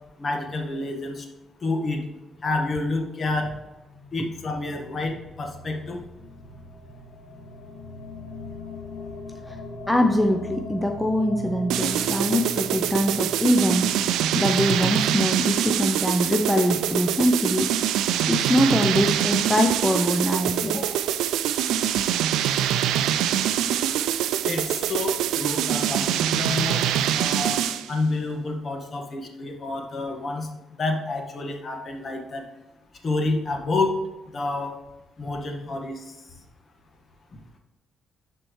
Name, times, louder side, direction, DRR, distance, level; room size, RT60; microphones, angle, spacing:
voice 1, 0.2-1.3 1.6-2.0 2.4-3.5 4.1-6.0 24.4-26.9 27.1-27.6 27.9-30.5 30.8-32.4 33.0-34.0 34.3-34.7 35.2-36.1, left 2 dB, 45° left, 3 dB, 1.5 m, -28 dB
sound 1, 3.8-16.1, left 1 dB, 65° left, 1.5 m, -40 dB
voice 2, 9.9-21.1, equal, 5° left, 4 dB, 0.6 m, -23 dB
sound 2, 11.7-27.9, right 10 dB, 90° right, 0.4 m, -24 dB
11.5 x 4.4 x 3.1 m, 1.0 s
cardioid pair, 90°, 0 cm